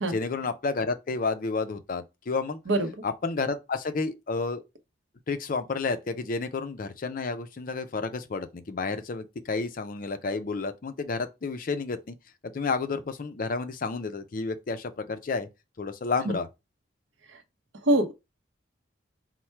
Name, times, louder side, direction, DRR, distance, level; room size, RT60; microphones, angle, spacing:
voice 1, 0.1-2.6 3.0-4.6 5.3-12.1 12.4-15.5 15.8-16.5, left 4 dB, 45° left, 0.4 m, -31 dB
voice 2, 17.8-18.1, right 1 dB, 70° right, 0.7 m, -24 dB
4.4 x 2.1 x 4.4 m
head